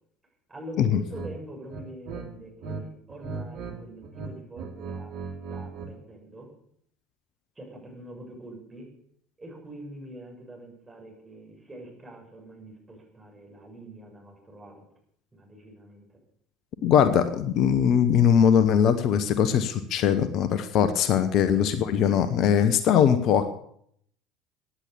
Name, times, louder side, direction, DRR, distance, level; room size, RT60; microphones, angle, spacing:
voice 1, 0.5-5.1 5.5-6.5 7.6-8.9 9.4-14.8 15.3-16.2, right 1 dB, 20° right, -1 dB, 7.4 m, -44 dB
sound 1, 1.1-1.3 1.7-2.8 3.1-3.8 4.0-5.9, right 4 dB, 60° right, 2.8 m, -37 dB
voice 2, 16.8-23.5, left 8 dB, 50° left, 12 dB, 1.1 m, -21 dB
16.0 x 10.0 x 7.0 m, 0.66 s
figure-of-eight pair, 65°, 0 cm